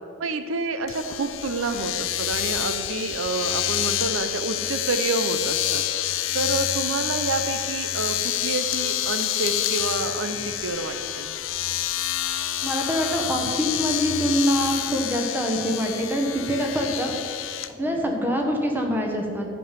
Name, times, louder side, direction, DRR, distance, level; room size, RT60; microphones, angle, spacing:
voice 1, 0.2-11.3 17.9-18.0, right 3 dB, 80° right, 9 dB, 0.7 m, -29 dB
Domestic sounds home sounds, 0.9-17.7, left 12 dB, 70° left, 0.5 m, -28 dB
voice 2, 12.6-17.2 17.8-19.5, equal, 10° right, 1 dB, 1.2 m, -25 dB
12.0 x 5.4 x 7.5 m, 2.5 s
head